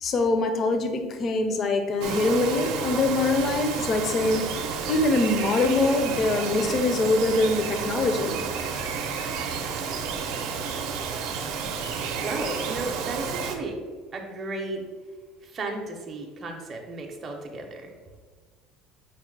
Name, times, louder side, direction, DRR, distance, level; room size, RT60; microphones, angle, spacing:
voice 1, 0.0-4.5 4.9-8.4, left 2 dB, 35° left, 6 dB, 0.4 m, -23 dB
Bird vocalization bird call bird song, 2.0-13.6, right 6 dB, 75° right, 0.5 m, -31 dB
voice 2, 12.2-13.8 14.1-14.8 15.4-17.9, right 2 dB, 25° right, 1 dB, 0.5 m, -34 dB
4.6 x 2.1 x 4.5 m, 1.4 s
cardioid pair, 145°, 0 cm